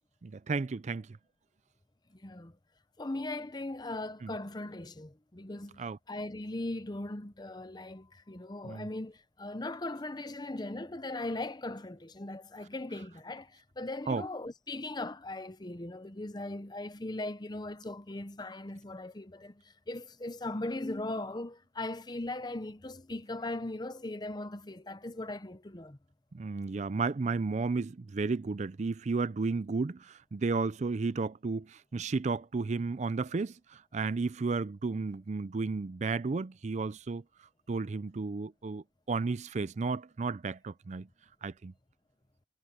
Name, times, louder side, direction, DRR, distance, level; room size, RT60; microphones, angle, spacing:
voice 1, 0.2-1.1 4.2-4.3 5.8-6.0 8.6-8.9 14.1-14.2 26.3-30.0 30.3-31.7 31.9-33.5 33.9-37.2 37.7-41.1 41.4-41.7, right 4 dB, 40° right, 0.4 m, -33 dB
voice 2, 2.1-2.5 3.0-26.0, left 2 dB, 25° left, 0.8 m, -39 dB
head